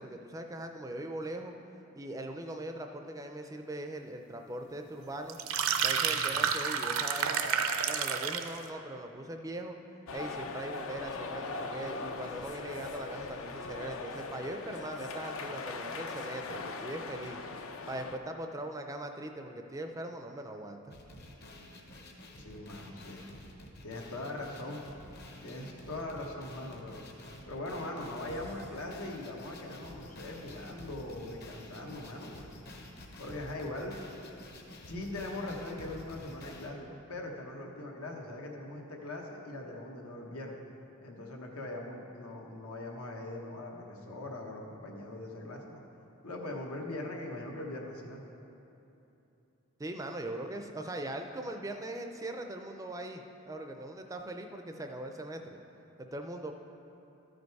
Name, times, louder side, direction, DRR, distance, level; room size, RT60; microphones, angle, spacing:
voice 1, 0.0-1.5 1.9-5.4 5.8-7.6 7.9-9.8 10.1-17.4 17.9-20.9 49.8-55.6 56.0-56.5, right 1 dB, 15° right, 5 dB, 0.4 m, -40 dB
sound 1, 5.3-8.6, right 7 dB, 70° right, 0.5 m, -30 dB
voice 2, 6.0-6.5 22.4-23.2 23.8-24.8 25.4-27.0 27.5-32.6 33.2-33.9 34.9-40.6 41.0-45.8 46.2-48.2, left 1 dB, 85° left, 0 dB, 1.2 m, -41 dB
sound 2, 10.1-18.2, left 4 dB, 70° left, 0.5 m, -40 dB
sound 3, 20.9-36.7, left 1 dB, 50° left, 0.9 m, -50 dB
13.0 x 5.2 x 4.7 m, 2.9 s
head